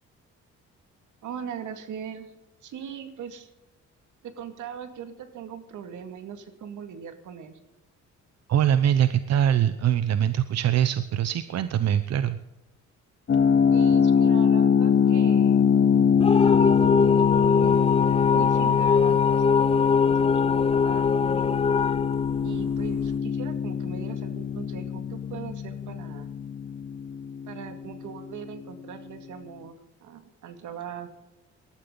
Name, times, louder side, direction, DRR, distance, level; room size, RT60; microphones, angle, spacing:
voice 1, 1.2-2.3 2.6-3.5 4.2-7.6 13.7-15.7 16.3-18.0 18.3-21.6 22.4-26.3 27.5-29.8 30.0-31.1, right 7 dB, 80° right, 8 dB, 2.2 m, -40 dB
voice 2, 8.5-12.4, right 10 dB, 60° right, 12 dB, 0.8 m, -23 dB
sound 1, 13.3-28.1, left 7 dB, 40° left, 0.8 m, -23 dB
sound 2, 16.2-23.1, left 5 dB, 20° left, 0.4 m, -23 dB
19.5 x 13.0 x 3.9 m, 0.98 s
cardioid pair, 90°, 30 cm